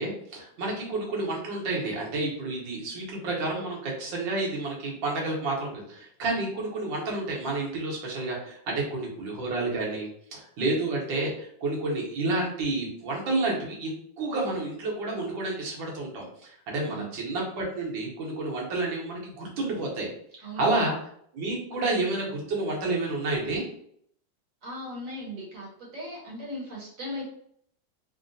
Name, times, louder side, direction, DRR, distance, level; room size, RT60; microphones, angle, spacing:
voice 1, 0.0-13.9 14.2-20.1 20.6-20.9 21.3-23.6, right 2 dB, 75° right, -2 dB, 1.6 m, -30 dB
voice 2, 20.4-20.9 24.6-27.2, equal, 50° right, -3 dB, 1.2 m, -38 dB
3.7 x 2.1 x 2.6 m, 0.67 s
omnidirectional pair, 2.0 m